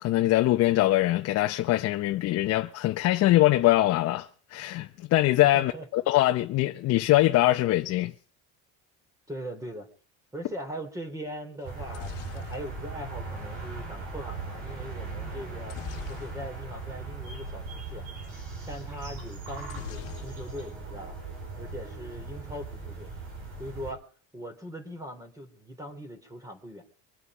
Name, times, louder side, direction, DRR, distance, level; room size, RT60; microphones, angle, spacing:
voice 1, 0.0-8.1, left 16 dB, 55° left, 0.9 m, -23 dB
voice 2, 5.5-5.9 9.3-9.9 10.3-15.8 16.1-18.0 18.7-21.1 21.5-23.1 23.6-24.0 24.3-26.8, equal, 10° right, 3.6 m, -40 dB
sound 1, 11.6-13.7 15.7-16.8 17.1-17.3 17.5-17.7 19.7-20.8 21.1-21.7, left 14 dB, 90° left, 1.6 m, -44 dB
sound 2, 11.6-23.9, right 3 dB, 85° right, 6.1 m, -39 dB
25.0 x 8.3 x 5.1 m
cardioid pair, 130°, 30 cm